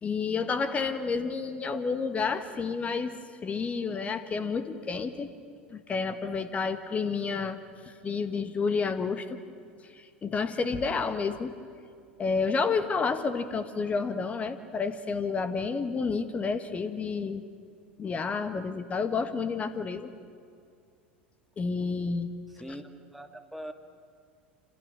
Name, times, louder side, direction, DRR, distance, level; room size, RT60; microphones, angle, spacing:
voice 1, 0.0-5.3 5.7-7.6 7.8-9.3 9.9-11.5 12.2-17.4 18.0-20.1 21.6-22.3, left 5 dB, 25° left, 10 dB, 1.6 m, -30 dB
voice 2, 22.5-23.7, equal, ahead, 6 dB, 1.7 m, -42 dB
28.0 x 27.5 x 6.5 m, 2.3 s
figure-of-eight pair, 80°, 6 cm